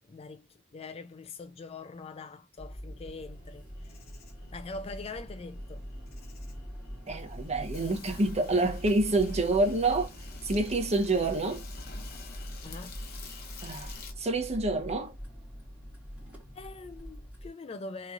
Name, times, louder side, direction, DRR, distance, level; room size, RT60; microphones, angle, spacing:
voice 1, 0.1-3.7 4.5-5.9 12.6-13.0 16.5-18.1, left 3 dB, 30° left, 0.4 m, -43 dB
sound 1, 2.6-17.5, equal, 5° right, 2.2 m, -43 dB
Insect, 3.5-14.1, left 5 dB, 55° left, 0.9 m, -49 dB
voice 2, 7.1-10.1 10.4-11.6 13.6-15.1, right 2 dB, 35° right, 0.9 m, -27 dB
3.7 x 3.0 x 2.6 m
head